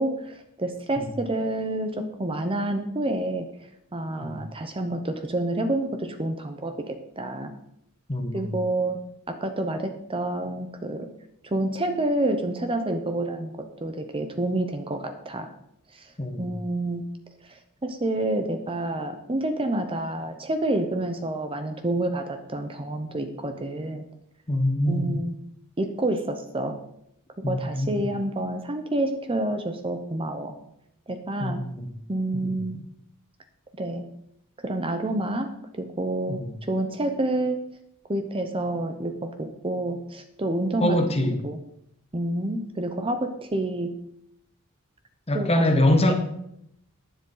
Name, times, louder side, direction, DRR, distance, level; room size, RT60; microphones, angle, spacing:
voice 1, 0.0-3.5 3.9-7.5 8.3-9.0 9.3-11.1 11.4-15.5 15.9-16.1 16.4-17.1 17.5-24.1 24.9-25.3 25.8-26.8 27.5-30.5 31.1-31.7 32.1-32.8 33.8-34.1 34.6-36.4 36.7-37.6 38.1-41.0 41.4-41.6 42.1-44.0 45.3-45.5 46.1-46.2, right 1 dB, 25° right, 7 dB, 0.8 m, -28 dB
voice 2, 8.1-8.6 16.2-16.5 24.5-25.1 27.4-28.0 31.4-31.9 32.4-32.8 36.3-36.5 40.8-41.4 45.3-46.1, left 1 dB, 25° left, 5 dB, 1.3 m, -24 dB
11.0 x 10.0 x 3.9 m, 0.77 s
head